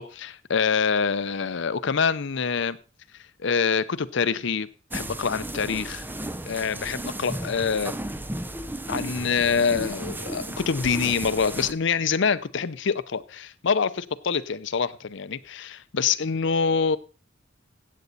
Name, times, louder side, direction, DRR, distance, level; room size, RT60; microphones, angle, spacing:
voice 1, 0.0-2.8 3.4-6.1 6.5-7.9 8.9-17.0, left 5 dB, 65° left, 0.6 m, -25 dB
sound 1, 4.9-11.7, right 1 dB, 10° right, 0.5 m, -34 dB
15.0 x 8.5 x 4.0 m
head